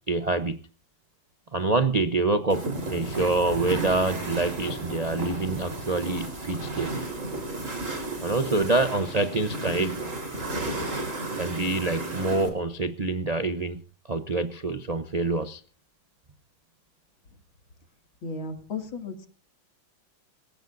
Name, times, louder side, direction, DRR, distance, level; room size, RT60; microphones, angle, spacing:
voice 1, 0.1-0.6 1.5-2.6 2.9-6.9 8.2-10.0 11.4-13.8 14.1-15.6, right 3 dB, 65° right, 8 dB, 0.4 m, -26 dB
sound 1, 2.5-12.5, right 2 dB, 40° right, 4.3 m, -33 dB
voice 2, 18.2-19.3, left 3 dB, 80° left, 6 dB, 3.3 m, -34 dB
26.5 x 15.5 x 2.6 m, 0.40 s
omnidirectional pair, 2.1 m